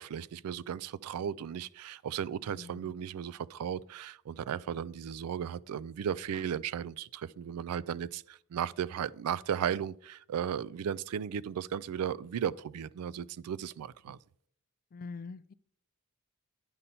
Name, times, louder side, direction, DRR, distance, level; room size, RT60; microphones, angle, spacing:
voice 1, 0.0-14.2, right 8 dB, 85° right, 0.3 m, -35 dB
voice 2, 14.9-15.5, left 4 dB, 40° left, 0.3 m, -43 dB
9.8 x 5.4 x 4.2 m
head